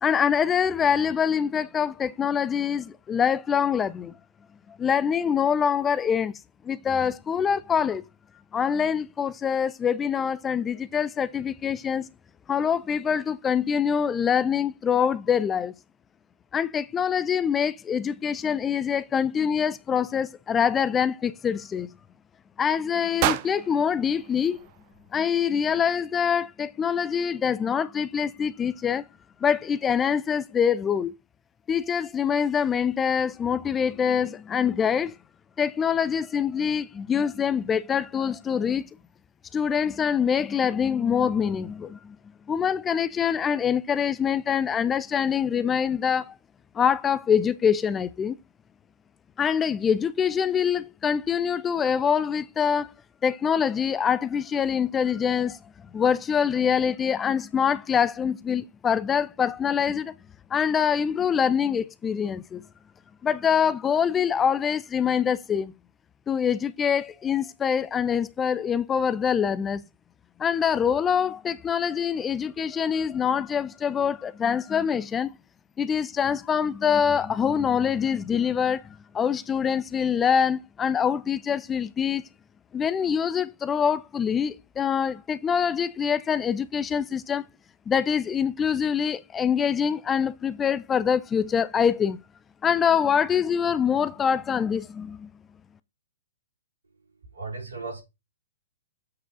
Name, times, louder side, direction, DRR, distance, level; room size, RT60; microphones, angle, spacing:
voice 1, 0.0-4.1 4.7-6.3 6.6-8.0 8.5-12.1 12.5-15.7 16.5-21.9 22.6-24.6 25.1-29.0 29.4-31.1 31.7-35.1 35.6-38.9 39.5-42.2 42.5-46.4 46.7-48.4 49.4-52.9 53.2-55.6 55.9-60.1 60.5-62.6 63.2-65.7 66.3-69.8 70.4-75.3 75.8-82.2 82.7-87.4 87.9-92.2 92.6-95.3, left 7 dB, 20° left, 0.6 m, -25 dB
sound 1, 23.2-25.3, right 14 dB, 40° right, 0.8 m, -31 dB
voice 2, 97.3-98.0, right 3 dB, 85° right, 5.8 m, -35 dB
8.5 x 4.8 x 3.8 m
figure-of-eight pair, 115°, 0 cm